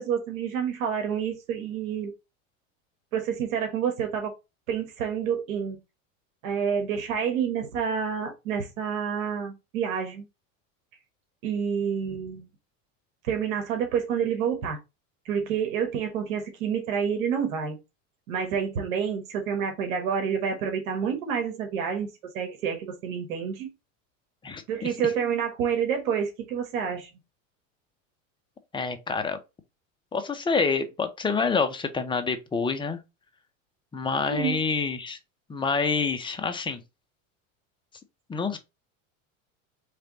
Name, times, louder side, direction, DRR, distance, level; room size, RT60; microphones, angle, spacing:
voice 1, 0.0-2.1 3.1-4.3 4.7-5.8 6.4-10.3 11.4-12.5 13.3-14.8 15.2-17.8 18.3-22.1 22.3-23.7 24.7-27.1 34.3-34.6, right 7 dB, 85° right, 1.4 m, -28 dB
voice 2, 24.4-24.9 28.7-29.4 30.1-33.0 33.9-35.2 35.5-36.8 38.3-38.6, left 4 dB, 15° left, 0.5 m, -27 dB
3.4 x 3.3 x 3.9 m
supercardioid pair, 125°, 40 cm